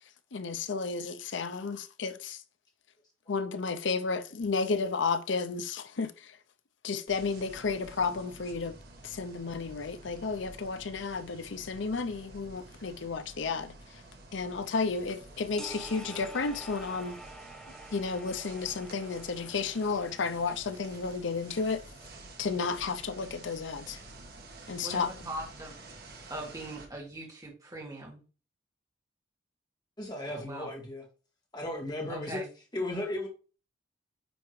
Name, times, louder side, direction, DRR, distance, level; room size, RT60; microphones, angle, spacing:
voice 1, 0.3-2.4 3.3-6.4 6.8-8.8 9.0-14.0 14.3-17.2 17.9-21.8 22.4-24.0 24.7-25.1, left 4 dB, 70° left, 0.6 m, -32 dB
sound 1, 7.1-26.9, right 2 dB, 55° right, 1.4 m, -50 dB
sound 2, 15.6-21.1, right 2 dB, 5° left, 0.9 m, -48 dB
voice 2, 24.8-25.7 26.3-28.2 30.3-30.7 32.1-32.5, right 1 dB, 20° right, 2.0 m, -41 dB
voice 3, 30.0-31.0 31.5-32.4 32.7-33.3, left 1 dB, 20° left, 1.8 m, -35 dB
9.3 x 3.5 x 3.2 m
head